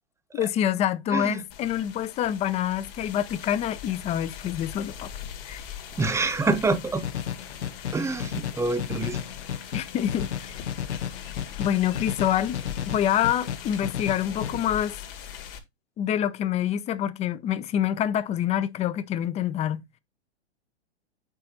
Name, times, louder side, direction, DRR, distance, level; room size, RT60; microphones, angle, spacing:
voice 1, 0.3-5.1 5.4-5.6 9.7-10.6 11.6-15.0 16.0-19.8, left 10 dB, 20° left, 0.6 m, -26 dB
voice 2, 1.1-1.4 6.0-7.0 7.9-9.2, right 3 dB, 10° right, 0.9 m, -26 dB
sound 1, 1.5-15.6, left 9 dB, 55° left, 2.3 m, -41 dB
sound 2, 7.0-14.5, left 9 dB, 85° left, 0.9 m, -33 dB
9.0 x 4.2 x 3.8 m
hypercardioid pair, 115°, 33 cm